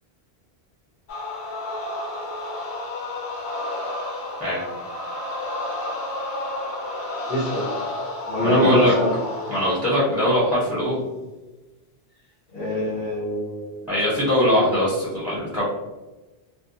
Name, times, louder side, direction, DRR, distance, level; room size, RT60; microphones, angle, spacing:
sound 1, 1.1-10.0, left 2 dB, 90° left, 0.9 m, -31 dB
voice 1, 7.3-7.7 8.3-9.1 12.5-13.8, left 1 dB, 60° left, -10 dB, 0.9 m, -23 dB
voice 2, 8.4-8.9 9.5-11.0 13.9-15.6, equal, ahead, -9 dB, 0.7 m, -21 dB
2.4 x 2.2 x 2.6 m, 1.1 s
omnidirectional pair, 1.1 m